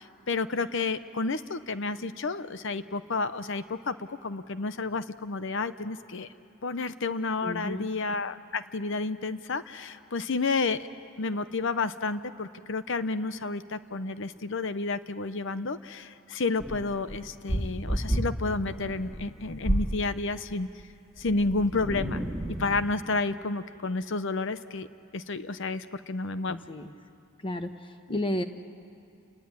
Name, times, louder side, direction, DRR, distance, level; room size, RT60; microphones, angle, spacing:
voice 1, 0.0-6.3 6.6-10.9 11.2-20.7 21.2-22.2 22.6-24.9 25.1-26.6 28.1-28.2, left 3 dB, 60° left, 12 dB, 0.8 m, -31 dB
voice 2, 7.4-7.8 26.5-26.9 27.4-28.4, left 1 dB, 25° left, 7 dB, 1.1 m, -32 dB
sound 1, 16.6-20.0 21.2-22.9, right 1 dB, ahead, 2.3 m, -31 dB
29.5 x 19.0 x 9.8 m, 2.5 s
head